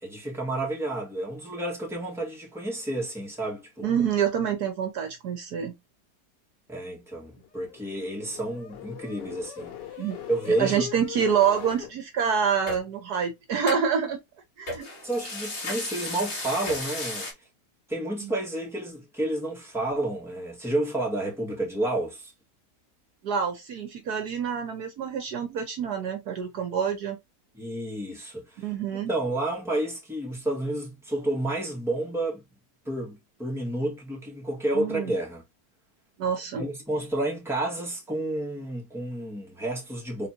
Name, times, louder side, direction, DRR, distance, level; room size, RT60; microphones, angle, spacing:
voice 1, 0.0-3.9 6.7-9.7 10.3-10.9 15.0-17.3 17.9-22.3 27.5-28.7 29.1-32.4 32.9-35.4 36.6-40.3, right 1 dB, ahead, 1.7 m, -30 dB
voice 2, 3.8-5.7 10.0-10.2 10.6-14.2 14.6-14.9 18.2-18.3 23.2-27.2 28.6-29.1 34.7-35.1 36.2-36.6, right 7 dB, 65° right, 1.4 m, -27 dB
sound 1, 7.2-11.9, left 10 dB, 80° left, 1.6 m, -41 dB
sound 2, 12.7-12.8 13.7-13.8 14.7-17.3, left 2 dB, 40° left, 1.6 m, -34 dB
4.1 x 3.6 x 2.8 m
omnidirectional pair, 1.9 m